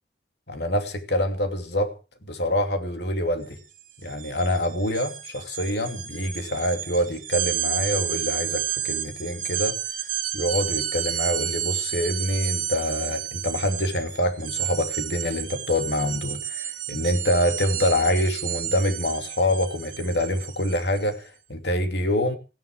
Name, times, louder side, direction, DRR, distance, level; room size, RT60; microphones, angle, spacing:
voice 1, 0.5-1.9 2.2-3.6 4.0-9.8 10.3-22.4, left 1 dB, 75° left, 2.6 m, -26 dB
sound 1, 3.4-3.6 3.9-21.1, right 12 dB, 50° right, 2.3 m, -31 dB
16.5 x 10.0 x 6.1 m
head